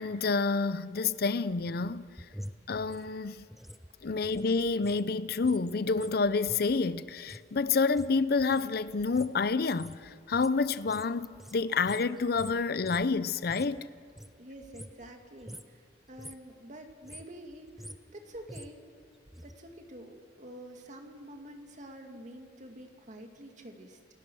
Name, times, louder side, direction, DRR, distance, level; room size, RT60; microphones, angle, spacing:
voice 1, 0.0-2.1 2.7-3.5 4.0-13.9, left 4 dB, 60° left, 0.6 m, -28 dB
sound 1, 1.5-5.1 5.3-13.8 14.1-15.2 15.4-15.8 16.1-16.5 16.9-19.5 19.8-19.9, equal, ahead, 0.5 m, -48 dB
voice 2, 14.4-18.8 19.4-24.0, right 1 dB, 45° right, 2.3 m, -48 dB
29.0 x 17.0 x 6.2 m
head